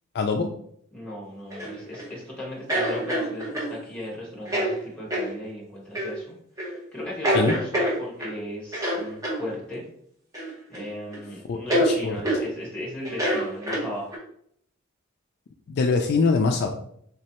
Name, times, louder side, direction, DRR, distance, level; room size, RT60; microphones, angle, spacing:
voice 1, 0.1-0.5 7.3-7.5 11.5-11.6 11.8-12.2 15.7-16.7, left 4 dB, 50° left, 4 dB, 0.3 m, -23 dB
voice 2, 0.9-6.3 6.6-9.8 10.7-14.2, left 1 dB, 5° left, -4 dB, 1.4 m, -37 dB
sound 1, 1.5-2.1 2.7-3.8 4.5-4.7 5.1-5.3 5.9-6.1 6.6-6.8 7.2-8.4 8.7-9.4 10.3-10.9 11.1-11.2 11.7-11.9 12.3-12.4 13.1-14.2, equal, 15° right, 0.9 m, -26 dB
3.6 x 3.1 x 2.9 m, 0.67 s
head